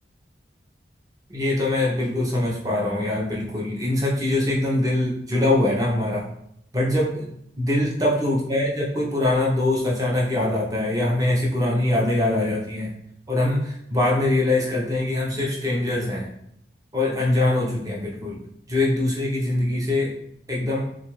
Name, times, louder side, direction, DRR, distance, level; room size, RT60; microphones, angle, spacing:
voice 1, 1.3-6.3 6.7-7.3 7.6-12.9 13.3-16.3 16.9-18.4 18.7-20.1 20.5-20.9, left 1 dB, 20° right, -4 dB, 0.6 m, -23 dB
2.7 x 2.3 x 3.0 m, 0.73 s
head